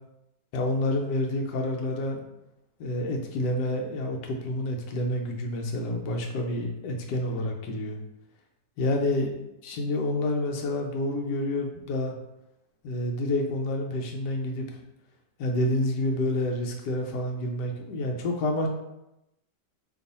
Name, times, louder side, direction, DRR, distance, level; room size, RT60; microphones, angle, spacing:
voice 1, 0.5-2.2 2.8-8.0 8.8-9.3 9.6-12.1 12.8-14.7 15.4-18.7, left 1 dB, 70° left, 2 dB, 1.1 m, -28 dB
3.0 x 2.4 x 4.0 m, 0.89 s
omnidirectional pair, 2.0 m